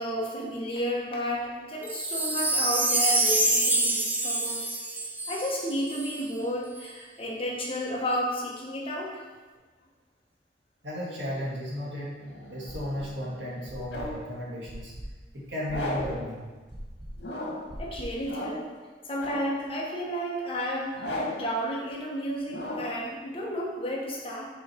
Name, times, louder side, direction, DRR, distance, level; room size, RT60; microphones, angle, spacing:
voice 1, 0.0-4.7 5.3-9.1 17.8-18.6 19.0-24.5, equal, 30° left, -4 dB, 1.2 m, -32 dB
Wind chime, 1.8-6.2 6.8-6.9, right 2 dB, 10° right, 0.4 m, -26 dB
voice 2, 10.8-12.2 12.5-14.9 15.3-16.5, left 1 dB, 85° right, -5 dB, 1.9 m, -34 dB
sound 1, 12.2-14.3 15.7-16.2 17.2-17.7 18.2-18.8 19.2-19.7 21.0-21.5 22.5-23.0, left 1 dB, 80° left, 1.6 m, -36 dB
sound 2, 12.7-13.2 13.7-18.3, equal, 25° right, 0.9 m, -41 dB
6.2 x 4.0 x 4.5 m, 1.3 s
head